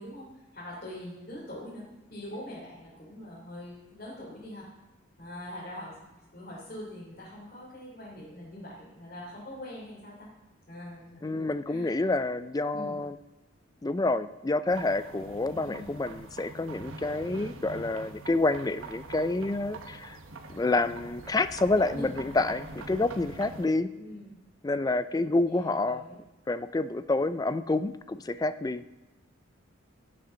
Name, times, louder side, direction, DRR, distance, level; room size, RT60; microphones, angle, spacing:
voice 1, 0.0-1.8 2.1-4.7 5.2-6.0 6.3-10.3 10.7-11.9 12.7-12.9 15.5-15.9 21.9-22.2 23.9-24.3 25.5-26.2, left 1 dB, 45° left, -8 dB, 3.3 m, -43 dB
voice 2, 11.2-13.2 13.8-20.2 20.5-23.9 24.6-26.0 26.5-28.8, left 2 dB, 20° left, 13 dB, 0.3 m, -28 dB
sound 1, 14.7-23.7, right 3 dB, 90° right, 1.0 m, -44 dB
16.5 x 7.6 x 3.9 m, 1.1 s
head